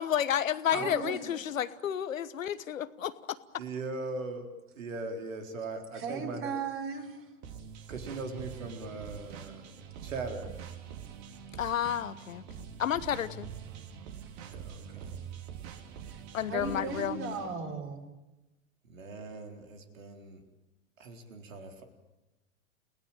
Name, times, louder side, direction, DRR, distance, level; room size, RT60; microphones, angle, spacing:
voice 1, 0.0-3.4 11.6-12.4 12.8-13.5 16.3-17.4, left 10 dB, 75° left, 14 dB, 1.3 m, -31 dB
voice 2, 0.7-1.2 5.9-7.3 16.1-16.2 16.5-18.1, right 5 dB, 30° right, 6 dB, 4.6 m, -36 dB
voice 3, 3.6-4.5 4.8-6.5 7.9-9.7 10.0-10.5 14.5-15.2 18.9-20.4 21.0-21.8, right 3 dB, 70° right, 5 dB, 4.0 m, -40 dB
sound 1, 7.4-17.5, right 7 dB, 50° right, 3.3 m, -45 dB
30.0 x 18.0 x 9.0 m, 1.0 s
figure-of-eight pair, 90°, 40 cm